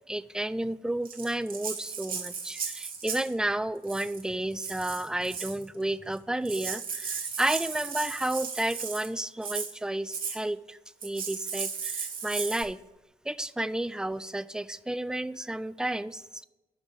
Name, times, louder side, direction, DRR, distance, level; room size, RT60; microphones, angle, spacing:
voice 1, 0.1-12.8 13.3-16.5, right 1 dB, 5° right, 15 dB, 0.3 m, -32 dB
Rattle (instrument), 1.1-3.3 3.8-4.2 4.6-5.6 6.2-6.3 6.5-9.1 9.4-9.7 10.1-10.4 11.0-12.6, right 6 dB, 50° right, 1.5 m, -35 dB
10.5 x 6.1 x 3.9 m, 1.0 s
hypercardioid pair, 40°, 19 cm